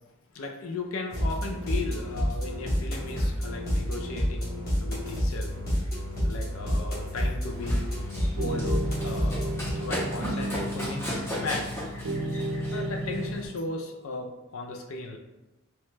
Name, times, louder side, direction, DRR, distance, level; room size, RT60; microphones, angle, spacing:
voice 1, 0.3-11.7 12.7-15.2, left 3 dB, 70° left, 2 dB, 0.4 m, -36 dB
sound 1, 1.1-9.7, equal, 45° left, 0.9 m, -29 dB
Run, 7.4-13.5, equal, 10° left, 0.6 m, -36 dB
sound 2, 8.4-13.3, right 1 dB, 65° right, 0.4 m, -33 dB
3.0 x 2.2 x 3.1 m, 1.0 s
head